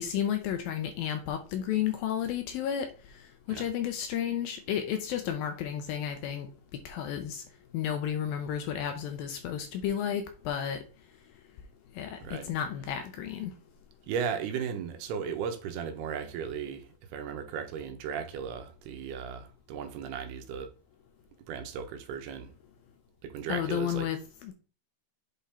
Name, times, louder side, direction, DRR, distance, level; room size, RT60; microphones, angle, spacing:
voice 1, 0.0-2.9 3.5-6.5 6.9-7.4 7.7-10.8 12.0-13.5 23.5-24.5, left 9 dB, 75° left, 2.3 m, -32 dB
voice 2, 14.1-20.7 21.5-22.5 23.2-24.1, right 7 dB, 80° right, 2.9 m, -36 dB
8.2 x 3.8 x 4.2 m
omnidirectional pair, 4.7 m